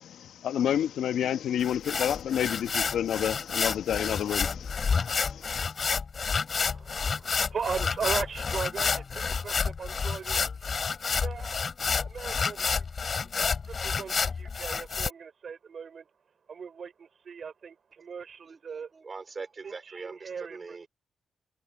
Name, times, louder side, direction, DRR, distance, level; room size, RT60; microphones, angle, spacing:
voice 1, 0.0-5.7, left 10 dB, 75° left, 1.2 m, -30 dB
sound 1, 1.6-15.1, left 5 dB, 50° left, 5.2 m, -29 dB
voice 2, 6.6-10.4 11.2-11.6 12.0-12.9 13.7-16.1 16.5-18.9 19.6-20.8, right 6 dB, 60° right, 5.6 m, -38 dB
voice 3, 18.4-20.9, right 4 dB, 40° right, 4.8 m, -42 dB
supercardioid pair, 45°, 0 cm